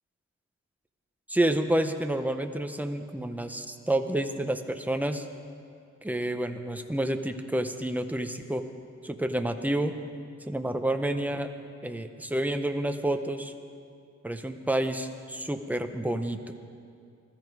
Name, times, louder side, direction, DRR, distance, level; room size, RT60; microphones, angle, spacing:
voice 1, 1.3-5.2 6.0-8.6 9.0-9.9 10.5-11.5 11.8-13.5 14.2-16.4, right 1 dB, 5° right, 7 dB, 0.7 m, -29 dB
20.0 x 13.0 x 4.7 m, 2.4 s
wide cardioid pair, 140°, 30 cm